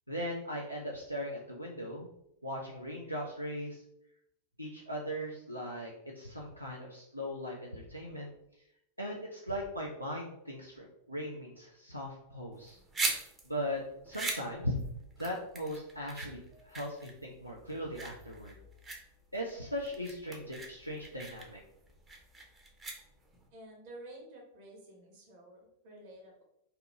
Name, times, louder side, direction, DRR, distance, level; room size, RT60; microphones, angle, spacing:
voice 1, 0.1-2.1 2.4-3.8 4.6-8.3 9.0-12.8 13.4-14.7 15.2-16.4 16.6-18.6 19.3-21.6, equal, 90° right, -2 dB, 0.4 m, -39 dB
sound 1, 12.5-23.5, right 3 dB, 20° right, 0.6 m, -41 dB
voice 2, 23.5-26.4, right 1 dB, 50° right, -1 dB, 1.0 m, -51 dB
2.9 x 2.4 x 3.1 m, 0.78 s
figure-of-eight pair, 90°, 0 cm